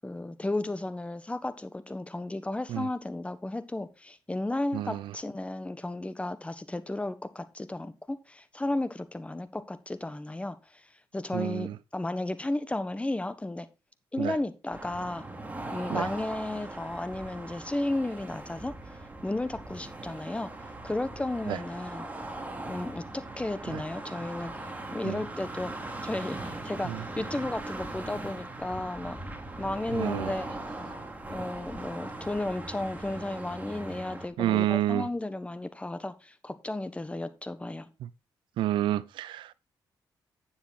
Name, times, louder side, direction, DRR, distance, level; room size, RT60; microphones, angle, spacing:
voice 1, 0.0-10.9 11.1-13.7 14.1-15.3 15.7-18.7 19.2-20.5 20.8-22.1 22.7-24.5 24.9-25.7 26.0-29.2 29.6-30.4 31.3-37.9, left 2 dB, 15° left, 1.3 m, -33 dB
voice 2, 4.7-5.1 11.3-11.7 14.2-14.4 15.9-16.1 21.5-21.6 25.0-25.2 26.9-27.0 29.9-30.3 34.4-35.1 38.6-39.5, right 13 dB, 90° right, 0.5 m, -29 dB
sound 1, 14.7-34.3, right 2 dB, 20° right, 2.4 m, -40 dB
9.7 x 7.2 x 4.2 m
cardioid pair, 75°, 8 cm